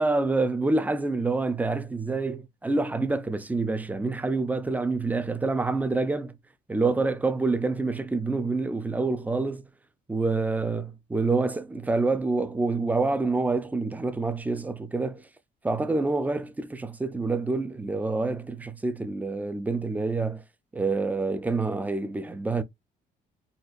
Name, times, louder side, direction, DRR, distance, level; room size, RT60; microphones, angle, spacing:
voice 1, 0.0-6.3 6.7-9.7 10.1-15.2 15.6-20.4 20.7-22.6, right 3 dB, 10° right, 0.4 m, -27 dB
4.1 x 2.4 x 2.5 m
cardioid pair, 110°, 17 cm